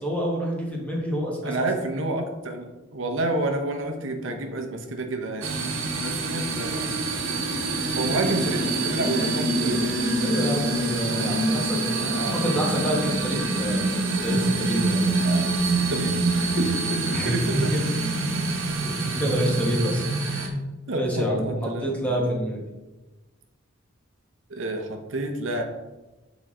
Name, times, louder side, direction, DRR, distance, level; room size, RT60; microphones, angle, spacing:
voice 1, 0.0-1.7 8.3-8.4 10.2-13.9 14.2-15.0 17.1-17.8 18.8-20.5 20.9-22.6, equal, 5° left, -2 dB, 1.4 m, -28 dB
voice 2, 1.4-5.7 6.0-6.9 7.9-9.9 12.1-12.9 15.2-17.8 20.9-22.2 24.5-25.6, right 2 dB, 70° right, 4 dB, 0.8 m, -29 dB
sound 1, 5.4-20.5, right 2 dB, 85° right, 1.1 m, -26 dB
8.0 x 4.0 x 3.7 m, 1.1 s
head